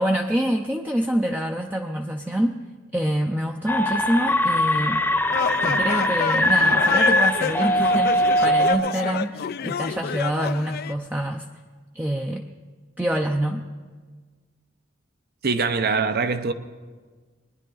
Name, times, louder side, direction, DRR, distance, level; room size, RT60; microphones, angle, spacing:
voice 1, 0.0-2.6 2.9-5.1 5.6-11.5 11.9-12.4 13.0-13.6, right 1 dB, 10° right, 0.5 m, -26 dB
sound 1, 3.7-8.7, equal, 10° left, 0.8 m, -21 dB
sound 2, 5.3-10.9, left 7 dB, 50° left, 0.4 m, -29 dB
voice 2, 15.4-16.5, right 4 dB, 55° right, 0.7 m, -23 dB
21.0 x 10.0 x 3.9 m
head